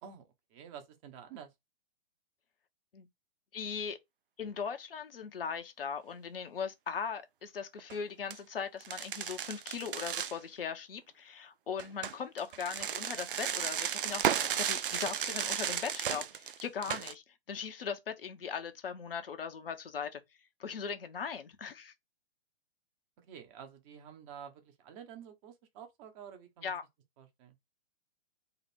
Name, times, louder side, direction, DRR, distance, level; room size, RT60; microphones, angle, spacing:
voice 1, 0.0-1.5 23.2-26.7 27.2-27.5, right 8 dB, 30° right, 1.1 m, -50 dB
voice 2, 3.5-4.0 4.4-17.2 17.5-20.2 20.6-21.9 26.6-26.8, left 6 dB, 65° left, 1.1 m, -39 dB
sound 1, 7.8-8.0 8.3-8.4 8.8-10.4 11.8-17.1, right 9 dB, 60° right, 0.6 m, -34 dB
4.0 x 2.5 x 4.4 m
figure-of-eight pair, 115°, 30 cm